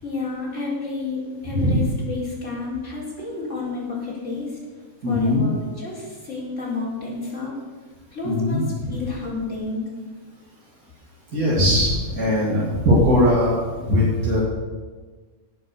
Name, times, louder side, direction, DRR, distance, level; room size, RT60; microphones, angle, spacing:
voice 1, 0.0-4.6 5.1-7.5 8.1-9.8, left 3 dB, 60° left, -6 dB, 4.7 m, -30 dB
voice 2, 5.0-5.4 8.2-8.6 11.3-13.5 13.8-14.4, left 1 dB, 85° right, -7 dB, 3.3 m, -19 dB
17.0 x 6.4 x 6.8 m, 1.4 s
omnidirectional pair, 1.5 m